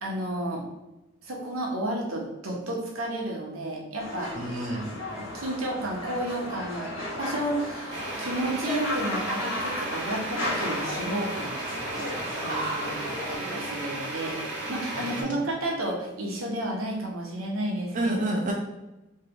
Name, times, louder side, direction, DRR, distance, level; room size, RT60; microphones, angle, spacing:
voice 1, 0.0-0.6 1.2-4.3 5.3-14.4 14.7-18.1, right 1 dB, 85° right, -2 dB, 1.0 m, -32 dB
sound 1, 4.0-13.4, left 1 dB, 75° left, 1.4 m, -34 dB
voice 2, 4.4-4.9 12.5-12.8 17.9-18.5, right 1 dB, 40° right, -1 dB, 0.5 m, -28 dB
sound 2, 7.9-15.2, right 2 dB, 55° right, 1.3 m, -35 dB
3.3 x 2.9 x 3.6 m, 0.99 s
head